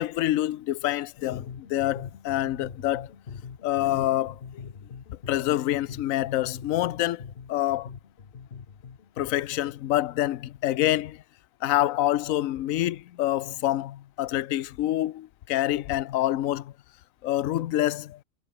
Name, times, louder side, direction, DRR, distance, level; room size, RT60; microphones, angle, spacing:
voice 1, 0.0-3.1 3.6-4.6 5.3-7.2 7.5-7.9 9.2-11.2 11.6-16.7 17.2-18.2, left 14 dB, 70° left, 1.0 m, -26 dB
sound 1, 1.3-9.7, left 6 dB, 45° left, 1.3 m, -43 dB
omnidirectional pair, 1.6 m